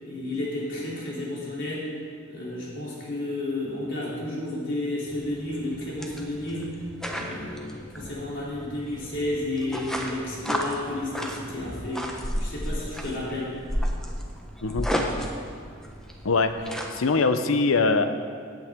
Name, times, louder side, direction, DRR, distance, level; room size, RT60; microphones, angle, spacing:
voice 1, 0.0-1.9 2.3-6.8 7.1-12.1 12.4-13.6, left 1 dB, 65° left, -6 dB, 3.4 m, -32 dB
sound 1, 5.1-17.0, equal, 5° left, 0.9 m, -33 dB
voice 2, 16.2-18.1, left 3 dB, 80° left, 9 dB, 0.7 m, -23 dB
16.0 x 8.7 x 3.7 m, 2.1 s
head